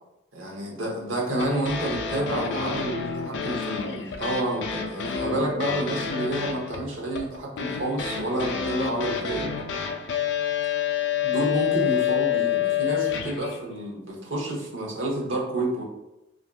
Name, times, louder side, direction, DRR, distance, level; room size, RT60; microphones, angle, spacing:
voice 1, 0.3-9.5 11.2-15.8, right 1 dB, 85° right, -1 dB, 0.8 m, -29 dB
sound 1, 1.4-13.6, left 9 dB, 65° left, 0.3 m, -28 dB
3.4 x 2.5 x 2.3 m, 0.90 s
head